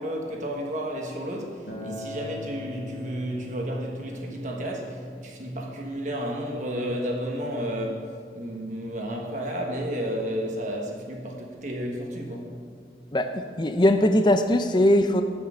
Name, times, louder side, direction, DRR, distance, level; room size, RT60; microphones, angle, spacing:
voice 1, 0.0-12.5, equal, 45° right, 0 dB, 1.4 m, -32 dB
Acoustic guitar, 1.7-6.9, left 2 dB, 70° left, 2.0 m, -42 dB
voice 2, 13.1-15.2, left 1 dB, 25° left, 8 dB, 0.5 m, -20 dB
8.5 x 7.4 x 6.3 m, 2.1 s
head